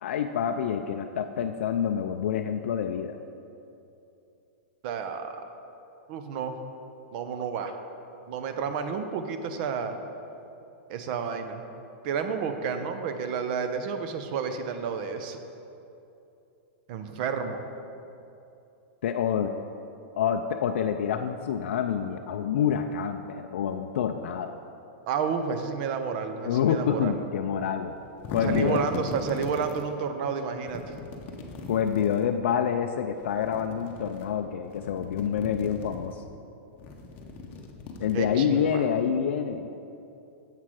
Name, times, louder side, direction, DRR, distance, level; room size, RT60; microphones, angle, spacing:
voice 1, 0.0-3.2 19.0-19.5 20.1-24.5 26.4-27.9 28.3-28.8 31.7-36.2 38.0-39.7, left 8 dB, 75° left, 6 dB, 0.3 m, -27 dB
voice 2, 4.8-5.4 6.1-6.6 7.1-7.8 8.3-9.9 10.9-11.6 12.0-15.4 16.9-17.6 25.1-27.2 28.4-30.9 38.1-38.9, right 6 dB, 45° right, 8 dB, 0.6 m, -31 dB
sound 1, 27.9-29.9 30.7-32.3 33.2-34.3 34.6-36.1 36.7-38.5, left 3 dB, 30° left, 0.8 m, -38 dB
7.4 x 5.8 x 4.7 m, 2.8 s
supercardioid pair, 150°, 7 cm